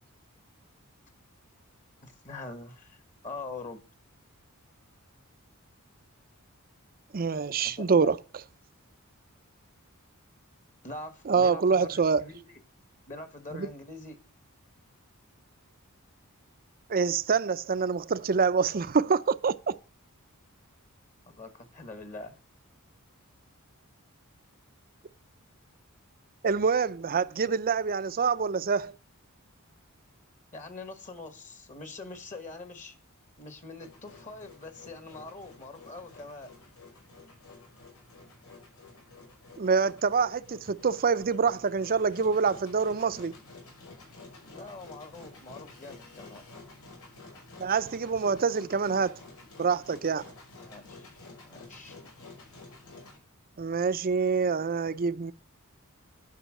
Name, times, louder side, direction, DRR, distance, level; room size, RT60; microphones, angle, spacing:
voice 1, 2.0-3.0 3.2-3.8 7.6-8.1 10.8-12.6 13.1-14.2 21.3-22.4 30.5-32.9 33.4-36.5 44.4-46.4 50.6-51.2 51.4-52.0, left 3 dB, 35° left, 1.5 m, -43 dB
voice 2, 7.1-8.2 11.3-12.2 13.5-13.7 16.9-19.8 26.4-28.9 39.6-43.3 47.6-49.2 49.6-50.2 53.6-55.3, right 5 dB, 40° right, 0.5 m, -26 dB
Engine, 33.8-53.2, left 3 dB, 85° left, 5.4 m, -51 dB
11.0 x 5.6 x 6.4 m
head